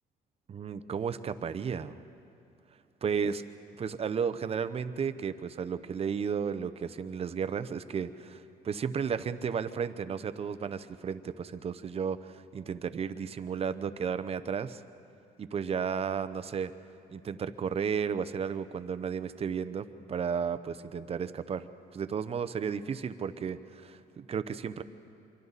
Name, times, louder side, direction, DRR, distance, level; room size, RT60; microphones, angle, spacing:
voice 1, 0.5-2.0 3.0-3.4 3.8-14.8 15.4-16.7 17.1-21.7 21.9-24.8, right 6 dB, 35° right, 12 dB, 0.8 m, -33 dB
26.5 x 23.5 x 4.1 m, 2.6 s
cardioid pair, 110°, 17 cm